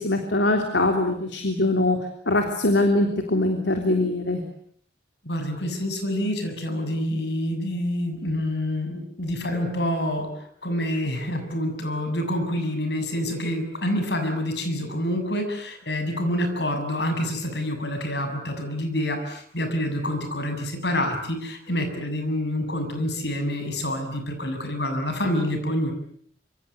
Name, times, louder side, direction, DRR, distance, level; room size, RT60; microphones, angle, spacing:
voice 1, 0.0-2.0 2.2-4.4, left 2 dB, 85° left, 4 dB, 3.5 m, -22 dB
voice 2, 5.2-10.3 10.6-25.9, left 1 dB, 70° left, 6 dB, 7.0 m, -27 dB
26.0 x 25.5 x 8.3 m, 0.64 s
head